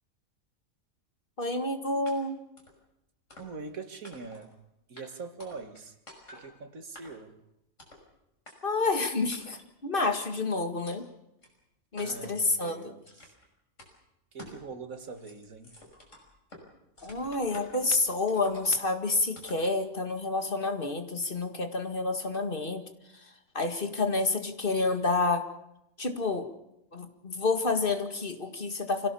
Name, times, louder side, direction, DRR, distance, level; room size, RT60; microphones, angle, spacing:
voice 1, 1.4-2.4 8.6-11.1 11.9-12.9 17.0-22.9 23.1-25.4 26.0-26.5 26.9-29.1, left 3 dB, 40° left, 6 dB, 2.1 m, -29 dB
sound 1, 2.1-2.2 2.6-2.8 3.3-3.7 4.0-4.5 5.0-5.1 5.4-5.8 6.1-6.5 6.9-7.3 7.8-8.0 8.5-8.6 9.3-9.7 10.2-10.3 10.9-11.0 11.4-11.5 12.0-12.4 13.0-13.5 13.8-13.9 14.4-14.6 15.0-16.6 17.0-17.9 18.3-18.9 19.3-19.7, left 1 dB, 65° left, 6.2 m, -50 dB
voice 2, 3.4-4.6 4.9-5.9 6.3-7.4 12.0-13.3 14.3-15.8, right 4 dB, 85° right, 7 dB, 2.4 m, -43 dB
25.5 x 17.5 x 7.0 m, 0.88 s
omnidirectional pair, 1.4 m